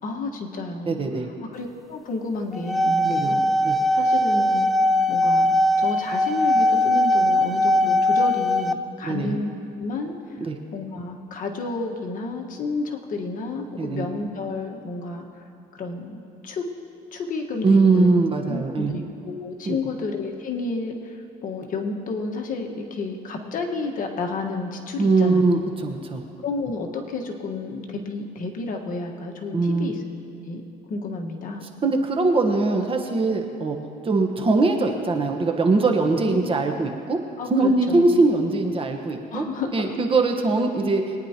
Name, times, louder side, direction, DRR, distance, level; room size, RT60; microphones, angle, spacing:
voice 1, 0.0-1.0 1.5-4.7 5.1-9.5 9.8-10.4 10.7-15.4 15.7-16.6 17.1-18.1 18.5-25.5 26.4-30.0 30.4-30.6 30.9-31.7 36.2-36.6 37.4-38.2 39.3-40.0, left 3 dB, 55° left, 1 dB, 1.5 m, -31 dB
voice 2, 0.9-1.3 3.0-3.4 3.6-3.8 9.0-9.4 10.4-10.5 13.8-14.1 17.6-18.9 19.7-19.8 25.0-26.2 29.5-29.9 31.8-33.8 34.0-37.2 37.5-39.4 39.7-41.1, right 3 dB, 30° right, 3 dB, 1.2 m, -21 dB
sound 1, 2.5-8.7, left 1 dB, ahead, 0.5 m, -20 dB
22.5 x 9.9 x 3.0 m, 2.6 s
cardioid pair, 110°, 17 cm